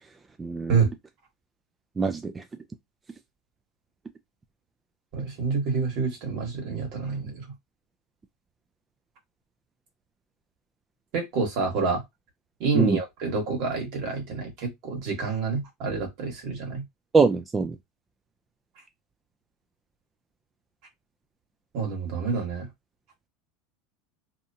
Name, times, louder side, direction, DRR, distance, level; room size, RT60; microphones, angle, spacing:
voice 1, 0.4-0.8 2.0-2.4 12.7-13.0 17.1-17.8, right 4 dB, 20° right, 0.3 m, -23 dB
voice 2, 5.1-7.4 11.1-12.0 12.6-16.8 21.7-22.7, right 4 dB, 60° right, 1.4 m, -28 dB
2.7 x 2.2 x 2.7 m
supercardioid pair, 115°, 0 cm